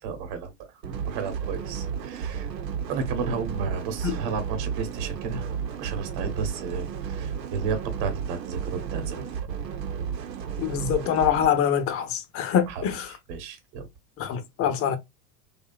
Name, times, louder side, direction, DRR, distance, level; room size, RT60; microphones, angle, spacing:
voice 1, 0.0-0.7 1.0-2.5 2.9-5.5 5.8-9.3 12.7-13.9, right 5 dB, 50° right, 1.0 m, -33 dB
sound 1, 0.8-11.5, right 7 dB, 80° right, 0.8 m, -33 dB
voice 2, 10.6-13.1 14.2-15.0, left 8 dB, 30° left, 0.6 m, -24 dB
2.7 x 2.3 x 2.3 m
hypercardioid pair, 90°, 50 cm